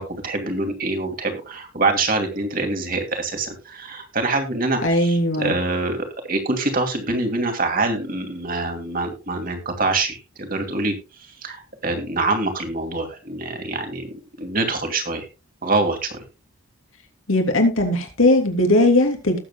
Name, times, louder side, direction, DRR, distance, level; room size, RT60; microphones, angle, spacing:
voice 1, 0.0-11.0 11.4-15.2 15.6-16.2, right 2 dB, 40° right, 4 dB, 2.6 m, -25 dB
voice 2, 4.8-5.5 17.3-19.4, left 1 dB, 75° left, 4 dB, 3.2 m, -18 dB
18.5 x 7.9 x 2.3 m, 0.28 s
head